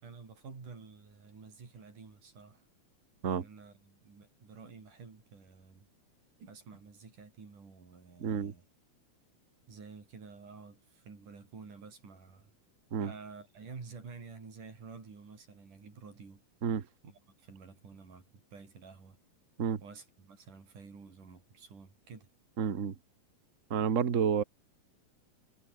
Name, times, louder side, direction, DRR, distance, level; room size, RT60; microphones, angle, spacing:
voice 1, 0.0-2.6 3.3-5.9 6.4-8.6 9.7-12.5 13.0-16.4 17.0-19.2 19.8-22.3, right 5 dB, 90° right, 6.9 m, -50 dB
voice 2, 8.2-8.5 12.9-13.1 16.6-16.8 19.6-19.8 22.6-22.9 23.7-24.4, right 7 dB, 45° right, 1.0 m, -30 dB
omnidirectional pair, 3.5 m